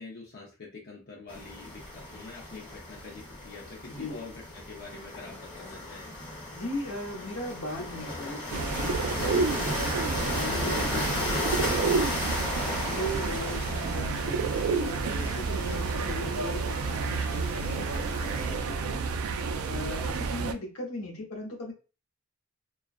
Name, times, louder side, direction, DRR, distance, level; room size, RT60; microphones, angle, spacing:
voice 1, 0.0-6.2 13.7-13.8, left 3 dB, 50° left, -3 dB, 0.5 m, -45 dB
sound 1, 1.3-18.6, left 1 dB, 20° left, 1.0 m, -35 dB
voice 2, 3.8-4.2 6.5-12.5 12.8-21.7, left 1 dB, 80° left, 0 dB, 0.9 m, -38 dB
sound 2, 8.5-20.5, right 4 dB, 75° right, 0.3 m, -30 dB
2.3 x 2.2 x 2.5 m, 0.33 s
head